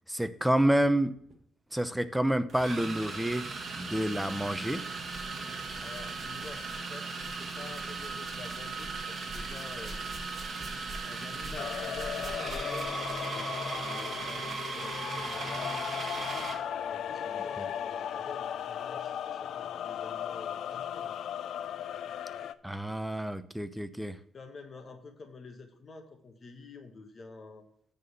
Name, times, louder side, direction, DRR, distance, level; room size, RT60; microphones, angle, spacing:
voice 1, 0.1-1.1 1.7-3.5 3.8-4.8 22.6-24.2, right 1 dB, 5° right, 12 dB, 0.7 m, -28 dB
sound 1, 1.2-1.3 2.5-16.7, right 4 dB, 40° right, 1.5 m, -37 dB
sound 2, 4.6-5.3 5.6-13.4 14.3-14.4 15.2-15.3, right 1 dB, 25° right, 3.8 m, -48 dB
voice 2, 5.5-10.0 11.0-14.5 14.7-21.2 24.3-27.7, left 4 dB, 40° left, 5 dB, 1.5 m, -48 dB
sound 3, 11.6-22.5, left 9 dB, 70° left, 0.4 m, -37 dB
9.6 x 4.2 x 6.9 m, 0.68 s
cardioid pair, 90°, 0 cm